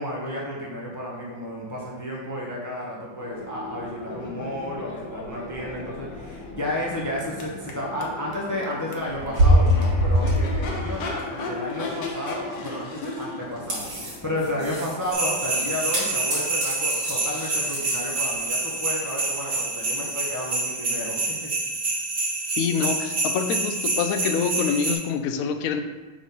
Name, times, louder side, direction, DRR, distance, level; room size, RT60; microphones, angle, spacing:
voice 1, 0.0-21.5, left 1 dB, 20° left, -4 dB, 0.5 m, -32 dB
Crowd / Race car auto racing / Accelerating revving vroom, 3.1-16.9, left 2 dB, 65° left, 1.4 m, -37 dB
sound 1, 9.1-11.2 11.8-11.9 13.2-13.3 13.6-18.9 20.8-20.9, equal, 75° right, 2.8 m, -24 dB
sound 2, 15.1-24.9, right 3 dB, 40° right, 1.0 m, -27 dB
voice 2, 22.6-25.8, left 6 dB, 80° left, 7 dB, 0.7 m, -26 dB
5.0 x 3.7 x 5.5 m, 1.2 s
omnidirectional pair, 2.0 m